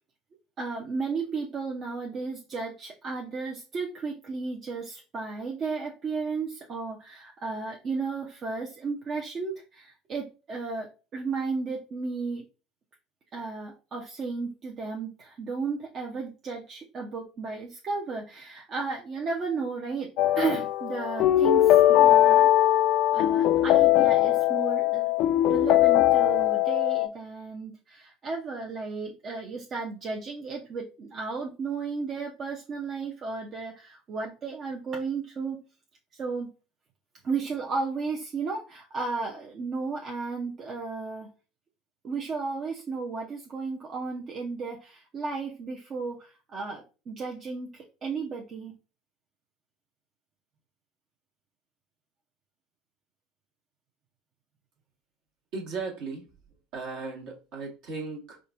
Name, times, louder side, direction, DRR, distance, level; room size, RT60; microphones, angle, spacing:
voice 1, 0.6-12.5 13.3-22.5 23.1-25.1 25.5-35.6 36.1-36.5 37.2-41.3 42.0-48.7, right 4 dB, 40° right, 0 dB, 0.7 m, -34 dB
sound 1, 20.2-27.1, left 13 dB, 55° left, 0.3 m, -20 dB
voice 2, 55.5-56.3 56.7-58.4, right 4 dB, 60° right, 0 dB, 1.3 m, -36 dB
5.0 x 2.4 x 2.5 m, 0.32 s
figure-of-eight pair, 70°, 0 cm